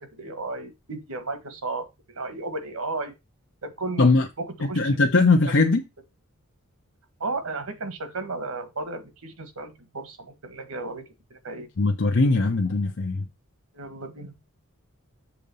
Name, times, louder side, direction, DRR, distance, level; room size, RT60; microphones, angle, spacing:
voice 1, 0.0-3.1 3.6-4.1 4.4-4.8 7.2-11.7 13.7-14.4, right 3 dB, 75° right, 1.6 m, -34 dB
voice 2, 4.6-5.8 11.8-13.3, left 3 dB, 55° left, 0.7 m, -20 dB
6.9 x 3.9 x 5.4 m
head